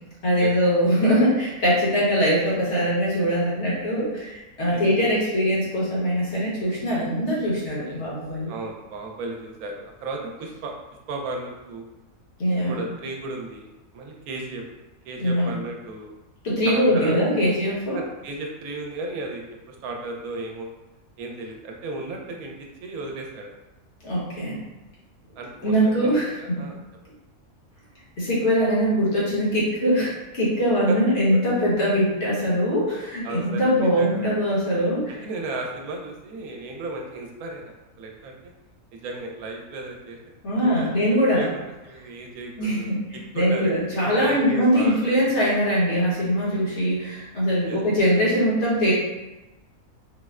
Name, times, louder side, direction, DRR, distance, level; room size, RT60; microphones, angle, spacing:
voice 1, 0.2-8.5 12.4-12.8 15.2-15.5 16.4-18.0 24.0-24.6 25.6-26.6 28.2-35.2 40.4-41.5 42.6-43.0 43.3-48.9, equal, 55° left, -7 dB, 1.3 m, -22 dB
voice 2, 4.7-5.1 7.8-8.0 8.5-10.7 11.1-11.8 12.5-13.7 13.9-14.6 15.0-16.1 16.7-17.2 17.9-19.4 19.7-20.7 21.2-22.5 22.8-23.5 25.4-26.8 30.9-31.0 31.3-31.4 33.2-34.3 35.1-38.5 38.9-40.2 40.6-41.0 41.3-42.9 43.3-43.7 44.0-45.3 47.7-47.8, right 3 dB, 90° right, 1 dB, 1.1 m, -34 dB
4.2 x 2.1 x 2.3 m, 1.0 s
omnidirectional pair, 1.5 m